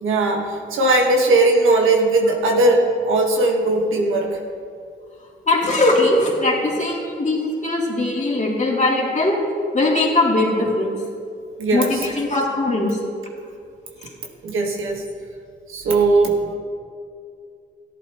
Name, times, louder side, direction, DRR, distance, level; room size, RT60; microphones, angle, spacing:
voice 1, 0.0-4.4 11.6-12.1 14.4-15.0 15.7-16.4, right 2 dB, 85° right, 1 dB, 1.4 m, -18 dB
voice 2, 5.5-9.4 9.7-11.0 11.7-13.0, left 2 dB, 35° left, -2 dB, 2.7 m, -20 dB
14.0 x 11.0 x 3.0 m, 2.4 s
cardioid pair, 55°, 20 cm